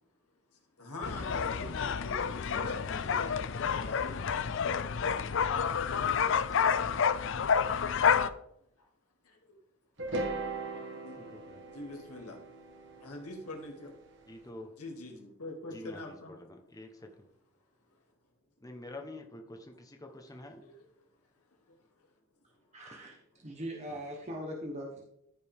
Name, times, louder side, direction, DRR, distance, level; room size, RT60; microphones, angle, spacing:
voice 1, 0.8-4.4 10.2-10.3 11.0-11.2 11.7-12.4 13.0-13.9 14.8-16.3 20.6-20.7, left 2 dB, 85° left, 1 dB, 2.5 m, -44 dB
sound 1, 1.0-8.3, left 6 dB, 55° left, 0.4 m, -29 dB
sound 2, 10.0-14.2, right 2 dB, 55° right, 1.4 m, -39 dB
voice 2, 14.3-14.7 15.7-16.9 18.6-20.6, left 1 dB, 15° left, 4 dB, 1.1 m, -47 dB
voice 3, 22.7-25.0, equal, 30° right, 0 dB, 1.1 m, -41 dB
14.0 x 5.3 x 3.5 m, 0.77 s
head